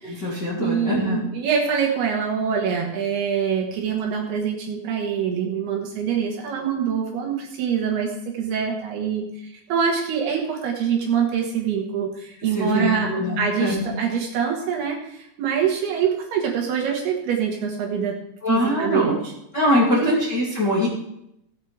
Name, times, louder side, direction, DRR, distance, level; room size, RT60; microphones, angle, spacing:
voice 1, 0.0-1.2 12.5-13.9 18.4-19.2 19.5-20.9, left 1 dB, 30° left, -7 dB, 2.4 m, -23 dB
voice 2, 0.6-18.1 18.5-19.1 19.9-20.2, right 7 dB, 65° right, 0 dB, 3.1 m, -25 dB
17.0 x 8.6 x 3.3 m, 0.79 s
omnidirectional pair, 5.2 m